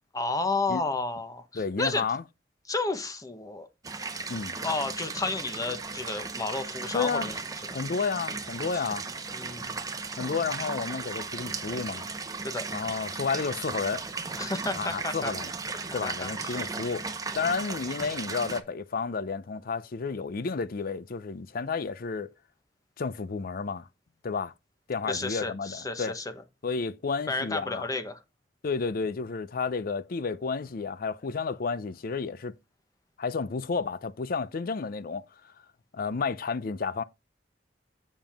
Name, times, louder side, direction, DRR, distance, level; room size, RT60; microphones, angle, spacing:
voice 1, 0.1-2.0 2.7-3.7 4.6-7.4 7.7-7.8 8.7-8.8 9.3-9.7 12.4-12.6 14.4-15.3 16.0-16.6 25.0-26.3 27.3-28.2, left 3 dB, 20° left, 1.0 m, -32 dB
voice 2, 1.5-2.2 4.3-4.6 6.9-7.3 7.7-9.0 10.2-12.1 12.7-14.0 14.7-15.5 15.9-22.3 23.0-23.9 24.2-24.5 24.9-26.1 26.6-27.9 28.6-32.5 33.2-35.2 35.9-37.0, left 5 dB, 55° left, 0.5 m, -31 dB
sound 1, 3.8-18.6, right 4 dB, 20° right, 0.8 m, -36 dB
7.4 x 7.0 x 3.5 m
head